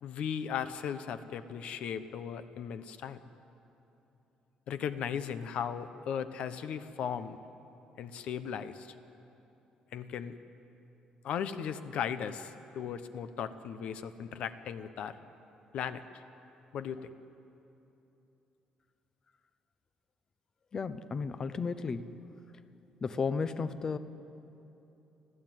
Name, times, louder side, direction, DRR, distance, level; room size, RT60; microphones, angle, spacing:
voice 1, 0.0-3.2 4.7-7.4 8.0-8.9 9.9-10.3 11.2-15.2 15.7-16.2 16.7-17.1, left 8 dB, 60° left, 12 dB, 0.9 m, -37 dB
voice 2, 20.7-22.2 23.0-24.0, left 5 dB, 25° left, 13 dB, 0.7 m, -33 dB
24.5 x 15.0 x 9.2 m, 3.0 s
cardioid pair, 165°, 2 cm